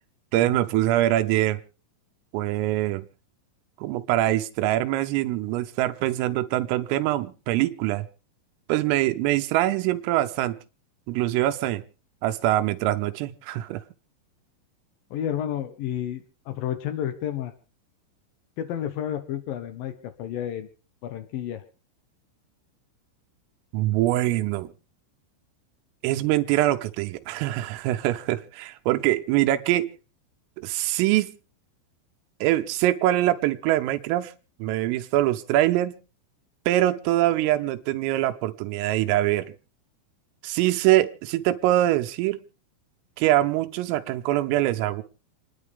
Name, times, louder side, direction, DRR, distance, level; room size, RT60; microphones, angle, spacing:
voice 1, 0.3-1.6 2.3-3.1 3.8-8.1 8.7-10.6 11.1-11.8 12.2-13.8 23.7-24.7 26.0-29.9 30.6-31.3 32.4-34.3 34.6-35.9 36.7-39.5 40.4-42.4 43.2-45.0, right 15 dB, 80° right, 3.6 m, -23 dB
voice 2, 15.1-17.5 18.6-20.7 21.0-21.6, left 10 dB, 80° left, 2.0 m, -31 dB
28.5 x 11.0 x 3.5 m
omnidirectional pair, 5.9 m